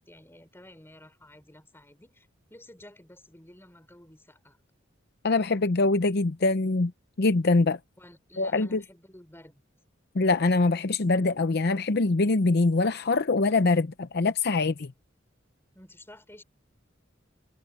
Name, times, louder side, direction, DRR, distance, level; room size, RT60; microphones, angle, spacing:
voice 1, 0.1-4.6 8.0-9.6 15.7-16.4, left 1 dB, 10° left, 5.6 m, -52 dB
voice 2, 5.2-6.9 7.2-7.8 8.4-8.8 10.1-14.9, left 3 dB, 55° left, 0.7 m, -23 dB
head